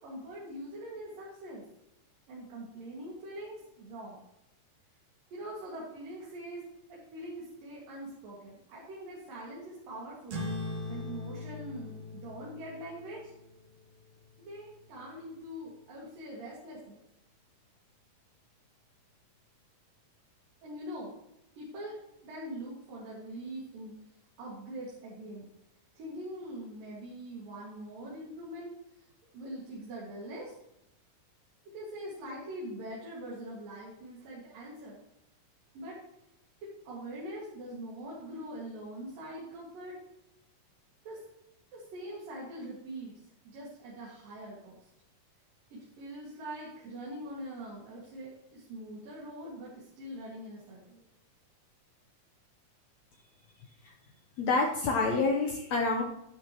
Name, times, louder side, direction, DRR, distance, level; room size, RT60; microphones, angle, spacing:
voice 1, 0.0-1.6 2.3-4.2 5.3-6.6 6.9-10.4 10.9-13.3 14.4-17.0 20.6-21.1 21.6-24.0 24.4-25.5 25.9-28.7 29.3-30.5 31.7-35.0 35.7-36.0 36.6-40.0 41.0-41.2 41.7-43.2 43.4-44.8 45.7-51.0, right 1 dB, 90° right, -5 dB, 3.9 m, -43 dB
sound 1, 10.3-15.2, left 2 dB, 55° right, 2.7 m, -41 dB
voice 2, 54.4-56.0, left 3 dB, 65° left, 0 dB, 2.0 m, -27 dB
12.0 x 10.5 x 3.1 m, 0.87 s
omnidirectional pair, 3.8 m